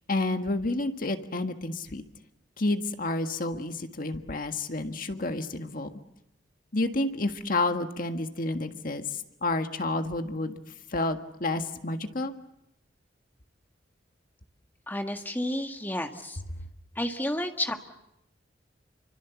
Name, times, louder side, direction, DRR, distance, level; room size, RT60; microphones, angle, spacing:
voice 1, 0.1-2.0 2.6-5.9 6.7-9.0 9.4-10.6 10.9-12.3, left 2 dB, 50° left, 6 dB, 1.7 m, -30 dB
voice 2, 14.9-16.4 17.0-17.7, left 1 dB, 10° left, 5 dB, 1.8 m, -31 dB
29.0 x 25.0 x 7.2 m, 0.84 s
head